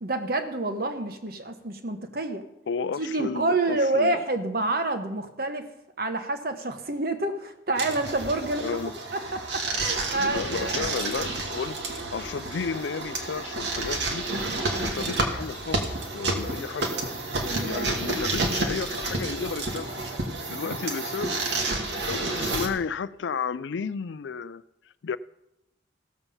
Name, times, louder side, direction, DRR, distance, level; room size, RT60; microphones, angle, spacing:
voice 1, 0.0-2.4 3.0-5.7 6.0-8.6 9.1-10.9 17.4-18.0, right 2 dB, 55° right, 1.2 m, -28 dB
voice 2, 2.7-4.2 8.6-8.9 10.1-14.3 14.8-16.9 17.4-20.1 20.5-21.4 22.0-24.6 25.0-25.2, left 5 dB, 85° left, 0.4 m, -33 dB
sound 1, 7.8-22.7, right 2 dB, 75° right, 1.7 m, -30 dB
16.0 x 7.1 x 5.6 m
head